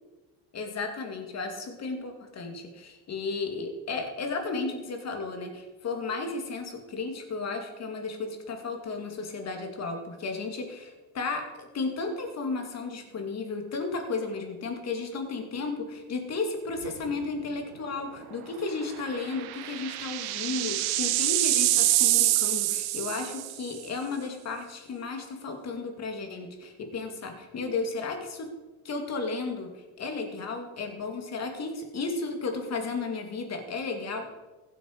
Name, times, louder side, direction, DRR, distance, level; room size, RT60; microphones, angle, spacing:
voice 1, 0.5-28.5 28.8-34.4, left 3 dB, 45° left, 4 dB, 2.6 m, -34 dB
sound 1, 16.8-17.2 17.5-17.6 19.0-23.7, right 15 dB, 75° right, 1.0 m, -26 dB
15.5 x 8.1 x 4.9 m, 1.2 s
supercardioid pair, 100°, 38 cm